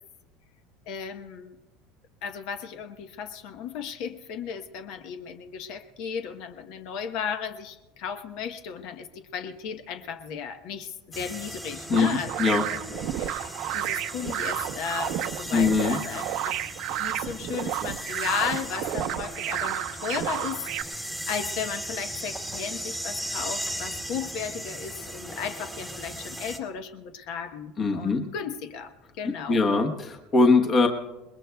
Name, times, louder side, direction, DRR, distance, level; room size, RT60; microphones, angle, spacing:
voice 1, 0.9-1.6 2.2-16.6 17.0-29.7, left 7 dB, 55° left, 8 dB, 1.0 m, -35 dB
sound 1, 11.1-26.6, right 1 dB, ahead, 1.2 m, -37 dB
sound 2, 11.9-20.8, right 12 dB, 50° right, 0.7 m, -31 dB
voice 2, 15.5-16.0 27.8-28.2 29.5-30.9, left 4 dB, 25° left, 4 dB, 1.1 m, -21 dB
28.0 x 21.0 x 2.3 m, 1.1 s
cardioid pair, 160°, 0 cm